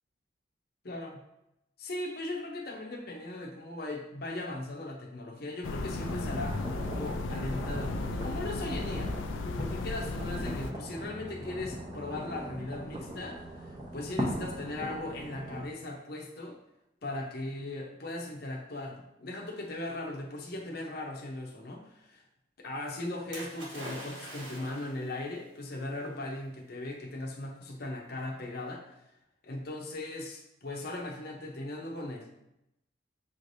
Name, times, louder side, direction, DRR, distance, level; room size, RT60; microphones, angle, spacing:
voice 1, 0.8-1.2 1.8-9.1 9.6-16.6 17.0-22.2 22.6-28.9 29.4-32.3, left 2 dB, 55° left, 0 dB, 0.7 m, -38 dB
sound 1, 5.6-10.7, left 2 dB, 85° left, 0.4 m, -35 dB
sound 2, 6.0-15.6, equal, 25° right, 0.8 m, -39 dB
Splash splatter, 23.3-25.1 26.1-26.2, right 1 dB, 80° right, 1.4 m, -43 dB
6.1 x 3.2 x 2.6 m, 0.85 s
head